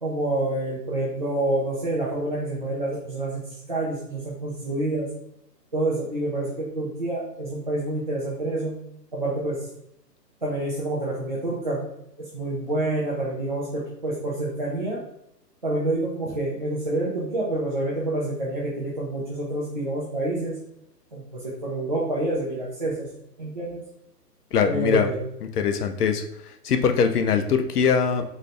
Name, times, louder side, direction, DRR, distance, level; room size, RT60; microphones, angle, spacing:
voice 1, 0.0-5.1 5.7-8.8 9.1-9.7 10.4-11.9 12.2-15.0 15.6-20.6 21.1-23.8 24.6-25.2, right 1 dB, 30° right, -6 dB, 0.4 m, -28 dB
voice 2, 24.5-25.1 25.6-28.2, left 6 dB, 70° left, 7 dB, 0.6 m, -22 dB
3.9 x 2.7 x 3.2 m, 0.78 s
hypercardioid pair, 160°, 49 cm